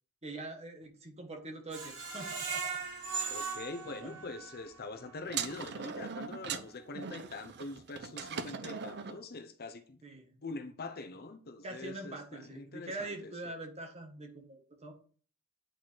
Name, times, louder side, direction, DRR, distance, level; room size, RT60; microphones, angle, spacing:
voice 1, 0.2-2.8 3.8-4.2 10.0-10.4 11.6-14.9, right 2 dB, 30° right, 1.5 m, -44 dB
Screech, 1.7-4.7 5.1-5.2 5.6-5.7, right 5 dB, 75° right, 3.1 m, -38 dB
voice 2, 3.3-10.0 10.4-13.3, left 3 dB, 45° left, 0.8 m, -44 dB
sound 1, 5.3-9.2, right 6 dB, 50° right, 0.6 m, -40 dB
9.1 x 4.7 x 4.6 m
head